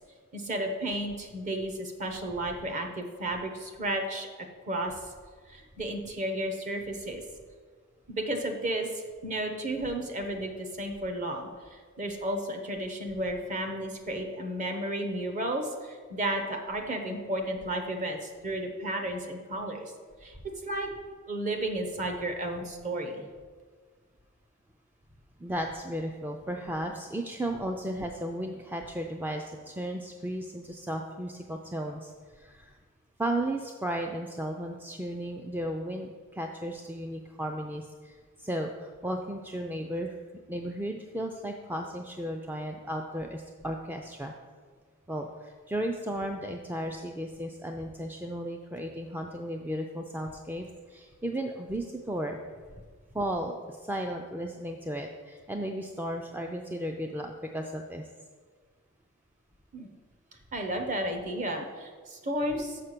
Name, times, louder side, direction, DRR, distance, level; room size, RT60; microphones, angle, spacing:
voice 1, 0.3-4.3 4.7-4.9 5.5-7.2 8.1-19.9 20.2-20.4 20.6-20.9 21.3-23.2 59.7-59.9 60.5-62.8, right 1 dB, 35° right, 3 dB, 1.0 m, -33 dB
voice 2, 25.4-32.8 33.2-40.1 40.5-44.3 45.1-52.4 53.1-58.0, right 1 dB, 10° right, 3 dB, 0.4 m, -35 dB
6.7 x 5.7 x 6.6 m, 1.5 s
head